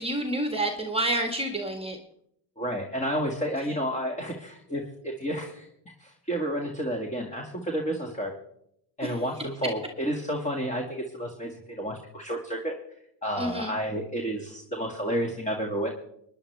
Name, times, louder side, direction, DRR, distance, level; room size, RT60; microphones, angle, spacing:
voice 1, 0.0-2.0 9.0-9.2 13.4-13.7, right 1 dB, 10° right, 5 dB, 1.6 m, -29 dB
voice 2, 2.6-5.7 6.0-8.3 9.0-12.7 13.2-15.9, equal, 15° left, 1 dB, 2.2 m, -31 dB
22.0 x 10.5 x 3.4 m, 0.73 s
supercardioid pair, 80°, 48 cm